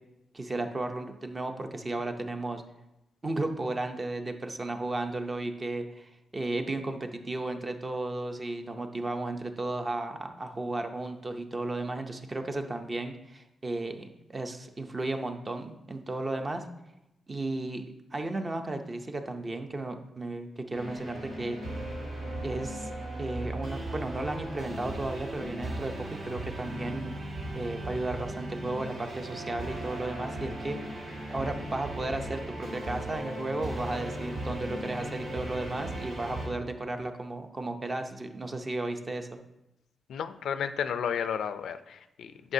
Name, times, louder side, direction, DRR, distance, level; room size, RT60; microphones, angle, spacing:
voice 1, 0.3-2.6 3.2-16.6 17.3-17.8 18.1-21.6 22.4-22.9 23.2-27.1 27.5-30.8 31.3-39.3, right 2 dB, 20° right, 6 dB, 0.5 m, -34 dB
sound 1, 20.7-36.5, right 1 dB, 70° right, 2.0 m, -37 dB
voice 2, 40.1-42.5, left 8 dB, 80° left, 11 dB, 0.4 m, -32 dB
9.6 x 5.4 x 2.7 m, 0.90 s
wide cardioid pair, 160°, 0 cm